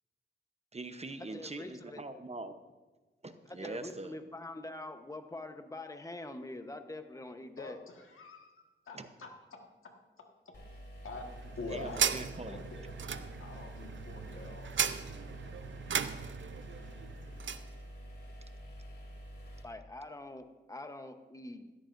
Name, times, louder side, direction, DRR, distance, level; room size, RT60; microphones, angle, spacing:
voice 1, 0.7-2.6 3.2-4.2 8.9-9.1 11.7-12.6, right 2 dB, 30° right, 9 dB, 0.8 m, -43 dB
voice 2, 1.3-2.0 3.5-7.8 19.6-21.7, left 2 dB, 15° left, 7 dB, 1.0 m, -44 dB
voice 3, 7.6-9.3 11.0-12.8 13.1-15.1, left 3 dB, 90° left, 2 dB, 1.7 m, -46 dB
sound 1, 10.5-19.6, equal, 55° left, 3.0 m, -48 dB
sound 2, 11.1-17.7, right 7 dB, 65° right, 0.6 m, -37 dB
16.0 x 13.5 x 2.6 m, 1.2 s
cardioid pair, 65°, 21 cm